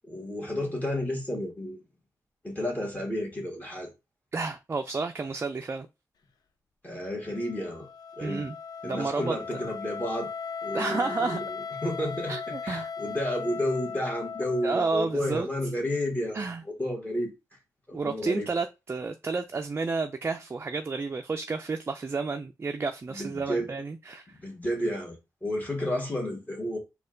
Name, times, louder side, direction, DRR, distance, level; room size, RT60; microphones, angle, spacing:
voice 1, 0.1-1.8 2.4-3.9 6.8-7.9 8.2-8.4 8.8-10.3 10.6-17.3 17.9-18.5 23.1-23.7 24.3-25.2 25.4-26.8, left 1 dB, 25° left, 1.5 m, -31 dB
voice 2, 4.3-5.9 8.2-8.5 8.8-9.6 10.7-11.4 12.3-12.9 14.6-15.5 16.3-16.6 17.9-24.4, right 4 dB, 35° right, 0.4 m, -31 dB
Wind instrument woodwind instrument, 7.2-15.2, left 6 dB, 85° left, 0.4 m, -37 dB
4.2 x 2.3 x 3.7 m
cardioid pair, 65°, 7 cm